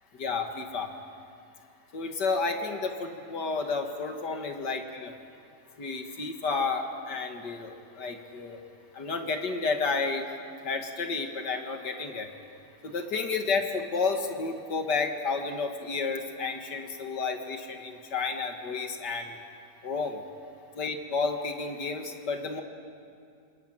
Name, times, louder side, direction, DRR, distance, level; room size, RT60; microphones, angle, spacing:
voice 1, 0.2-0.9 1.9-5.1 5.8-8.6 8.9-10.3 10.6-12.3 12.8-19.4 19.8-20.2 20.8-22.6, left 4 dB, 75° left, 4 dB, 2.4 m, -31 dB
26.0 x 21.0 x 9.0 m, 2.4 s
omnidirectional pair, 1.8 m